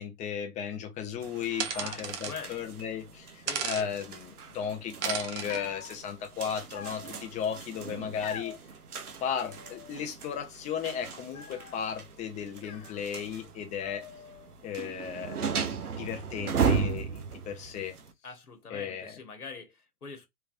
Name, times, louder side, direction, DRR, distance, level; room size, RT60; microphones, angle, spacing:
voice 1, 0.0-8.5 9.2-14.0 14.6-15.4 15.9-18.0 18.7-19.2, left 7 dB, 15° left, 0.6 m, -35 dB
sound 1, 1.2-18.1, right 6 dB, 85° right, 0.8 m, -37 dB
sound 2, 1.6-2.4 3.5-3.9 5.0-5.6, right 7 dB, 50° right, 0.9 m, -33 dB
voice 2, 1.7-2.6 3.5-3.9 18.2-20.3, left 5 dB, 90° left, 1.1 m, -43 dB
sound 3, 5.5-5.9 6.7-7.4 8.2-8.6 9.2-10.1 10.3-10.9 11.3-11.9 12.6-13.5 13.8-14.5, left 8 dB, 70° left, 0.8 m, -46 dB
3.4 x 3.3 x 2.5 m
figure-of-eight pair, 115°, 44 cm